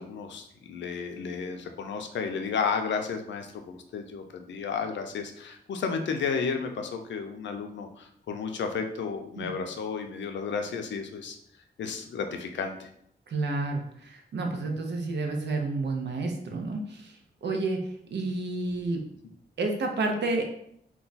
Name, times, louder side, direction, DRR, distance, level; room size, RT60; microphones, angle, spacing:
voice 1, 0.0-11.4 11.8-12.9, left 5 dB, 85° left, 5 dB, 0.4 m, -32 dB
voice 2, 13.3-17.1 17.4-17.8 18.1-19.0 19.6-20.4, right 3 dB, 75° right, 3 dB, 0.6 m, -30 dB
2.3 x 2.2 x 3.9 m, 0.70 s
wide cardioid pair, 95°, 18 cm